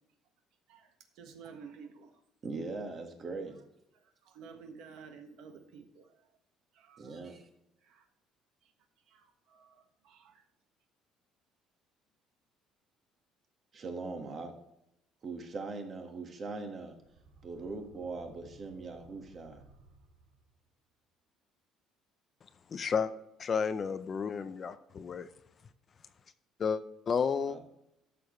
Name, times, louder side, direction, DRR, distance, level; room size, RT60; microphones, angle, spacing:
voice 1, 0.7-2.2 3.9-6.3 6.7-7.3 7.8-8.1 8.6-8.7 9.1-10.4, right 6 dB, 70° right, 6 dB, 1.4 m, -53 dB
voice 2, 2.4-3.6 7.0-7.5 13.7-14.5 15.2-16.9 17.4-19.6 27.5-27.6, right 3 dB, 30° right, 4 dB, 1.5 m, -40 dB
sound 1, 17.0-20.7, right 3 dB, 90° right, 1.8 m, -59 dB
voice 3, 22.7-23.1 23.4-25.3 26.6-27.6, left 6 dB, 30° left, 12 dB, 0.5 m, -32 dB
12.5 x 6.8 x 3.1 m, 0.82 s
cardioid pair, 170°, 0 cm